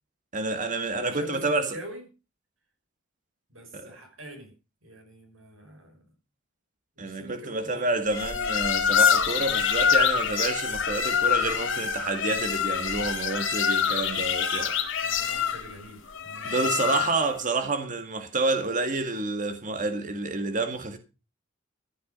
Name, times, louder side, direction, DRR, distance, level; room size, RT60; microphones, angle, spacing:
voice 1, 0.3-1.7 3.7-3.9 7.0-14.8 16.4-21.0, right 3 dB, 40° right, 2.0 m, -29 dB
voice 2, 0.9-2.1 3.5-4.5 4.8-6.0 7.0-8.1 15.0-17.0, right 1 dB, 85° right, 5.3 m, -44 dB
sound 1, 8.1-17.3, left 7 dB, 70° left, 2.3 m, -26 dB
14.5 x 9.6 x 5.4 m
head